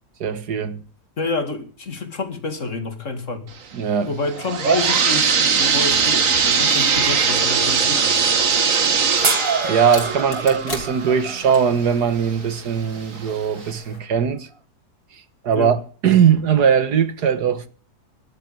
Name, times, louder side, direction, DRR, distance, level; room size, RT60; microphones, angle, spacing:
voice 1, 0.2-0.8 3.7-4.1 9.1-9.2 9.6-14.5 15.4-17.7, right 7 dB, 80° right, 1.9 m, -20 dB
voice 2, 1.2-3.5 4.0-8.2 15.5-15.7, left 3 dB, 50° left, 2.7 m, -28 dB
sound 1, 4.2-11.8 12.3-12.4 13.2-13.3 13.7-13.8, right 6 dB, 55° right, 1.8 m, -20 dB
sound 2, 5.6-14.0, left 2 dB, 75° left, 4.9 m, -36 dB
sound 3, 9.2-12.5 14.5-14.6, right 3 dB, 25° right, 0.9 m, -28 dB
12.5 x 11.5 x 8.9 m
omnidirectional pair, 1.7 m